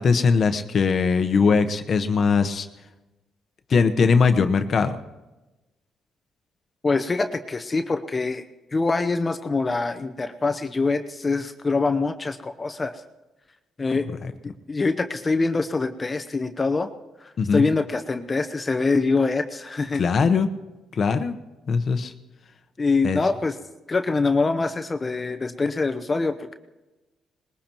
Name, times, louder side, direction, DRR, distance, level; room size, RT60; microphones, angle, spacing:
voice 1, 0.0-2.7 3.7-5.0 14.2-14.3 17.4-17.6 20.0-20.5 20.9-21.4 21.7-22.1 23.0-23.2, left 5 dB, 50° left, 9 dB, 1.0 m, -20 dB
voice 2, 6.8-8.4 8.7-12.9 13.8-14.1 14.7-16.9 17.2-20.0 22.8-23.6 23.9-26.5, left 3 dB, 30° left, 7 dB, 0.8 m, -24 dB
21.0 x 20.0 x 3.0 m, 1.1 s
cardioid pair, 90°, 0 cm